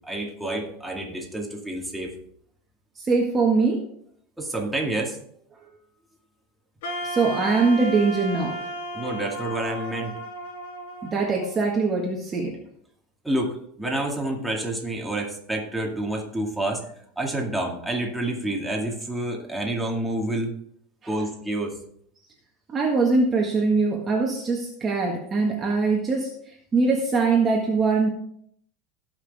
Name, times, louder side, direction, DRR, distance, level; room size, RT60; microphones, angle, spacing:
voice 1, 0.0-2.1 4.4-5.2 8.9-10.1 13.2-16.9 17.2-20.5 21.1-21.7, right 1 dB, 5° right, -1 dB, 2.1 m, -28 dB
voice 2, 3.0-3.8 7.0-8.7 11.0-12.6 21.0-21.1 22.7-28.1, right 4 dB, 20° right, -1 dB, 1.7 m, -22 dB
Wind instrument woodwind instrument, 6.8-11.9, right 1 dB, 75° left, 2.9 m, -34 dB
18.0 x 6.1 x 3.5 m, 0.66 s
supercardioid pair, 145°, 0 cm